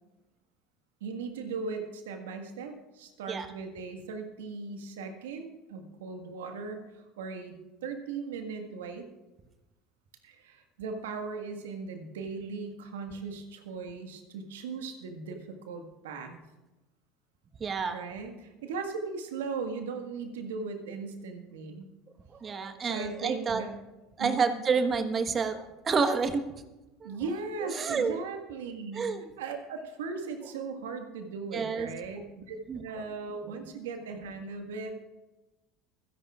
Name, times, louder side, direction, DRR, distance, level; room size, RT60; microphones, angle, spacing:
voice 1, 1.0-7.5 7.8-9.1 10.2-16.4 17.9-21.9 22.8-23.8 24.2-24.6 27.0-29.1 29.4-35.0, right 4 dB, 80° right, 5 dB, 1.6 m, -38 dB
voice 2, 17.6-18.0 22.4-23.6 24.2-26.4 27.0-27.2 27.6-28.2 28.9-29.3 31.5-31.9 32.7-33.0, right 5 dB, 35° right, 8 dB, 1.3 m, -29 dB
26.5 x 10.5 x 2.4 m, 1.1 s
hypercardioid pair, 75°, 0 cm